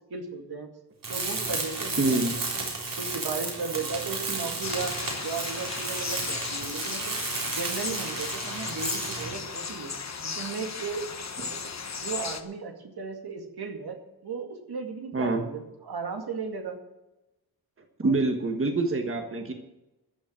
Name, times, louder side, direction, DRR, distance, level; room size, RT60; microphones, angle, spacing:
voice 1, 0.1-0.7 1.1-2.3 2.5-2.7 2.9-7.1 7.5-9.9 10.2-11.1 11.4-14.0 14.2-16.8 18.0-18.1 19.4-19.5, right 4 dB, 70° right, 3 dB, 2.3 m, -36 dB
Tools, 1.0-9.4, right 3 dB, 55° right, 3.7 m, -33 dB
voice 2, 2.0-2.3 15.1-15.4 18.0-19.5, right 3 dB, 35° right, 4 dB, 1.5 m, -25 dB
sound 1, 4.6-12.4, left 5 dB, 45° left, 1.2 m, -36 dB
14.0 x 7.1 x 9.0 m, 0.95 s
wide cardioid pair, 130°, 39 cm